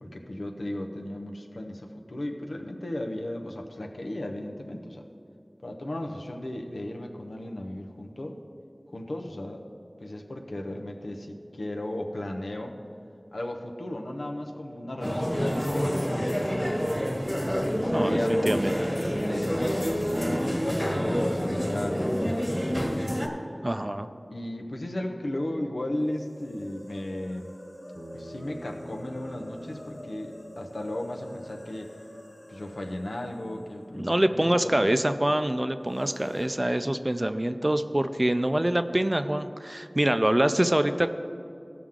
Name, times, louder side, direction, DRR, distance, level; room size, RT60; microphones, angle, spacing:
voice 1, 0.0-5.0 5.6-8.4 8.9-9.6 10.0-12.7 13.3-16.9 17.6-19.7 20.4-23.1 24.3-27.5 28.1-31.9 32.5-34.9, left 1 dB, 90° left, 2 dB, 0.8 m, -35 dB
sound 1, 15.0-23.3, equal, 10° left, 1.7 m, -27 dB
voice 2, 17.9-18.7 23.6-24.1 33.9-41.1, right 1 dB, 30° right, 9 dB, 0.4 m, -25 dB
sound 2, 26.0-34.8 35.1-35.2 35.8-36.5, left 1 dB, 65° left, 0.9 m, -47 dB
Bass guitar, 27.9-32.3, right 1 dB, 70° right, 1.1 m, -48 dB
16.0 x 6.0 x 3.7 m, 2.5 s
wide cardioid pair, 50°, 0 cm